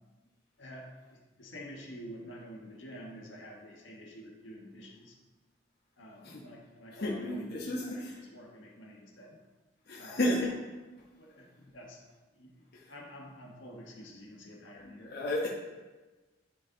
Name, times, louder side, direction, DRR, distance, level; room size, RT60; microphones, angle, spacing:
voice 1, 0.6-5.2 6.0-9.4 10.0-10.3 11.2-12.0 12.3-12.6 12.9-15.2, equal, 80° left, -1 dB, 1.5 m, -49 dB
voice 2, 6.9-8.2 9.9-10.5 12.7-12.9 14.9-15.5, left 1 dB, 60° left, -4 dB, 1.1 m, -33 dB
11.5 x 4.3 x 3.9 m, 1.2 s
head